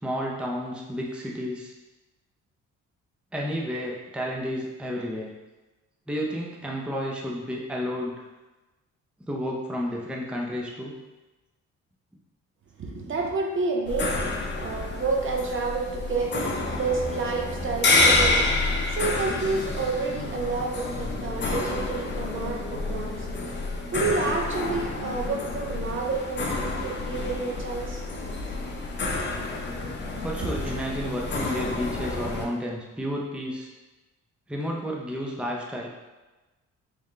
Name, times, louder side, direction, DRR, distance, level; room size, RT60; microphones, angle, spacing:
voice 1, 0.0-1.7 3.3-5.3 6.1-8.1 9.3-11.0 30.2-33.7 34.5-35.9, equal, 5° right, -2 dB, 0.6 m, -31 dB
voice 2, 12.8-14.3 14.6-16.5 16.8-18.4 18.9-23.3 23.9-28.0 30.4-30.5, right 4 dB, 45° right, 1 dB, 0.7 m, -29 dB
sound 1, 13.9-32.4, left 2 dB, 35° left, 0.7 m, -28 dB
3.6 x 3.3 x 3.2 m, 1.1 s
cardioid pair, 90°, 30 cm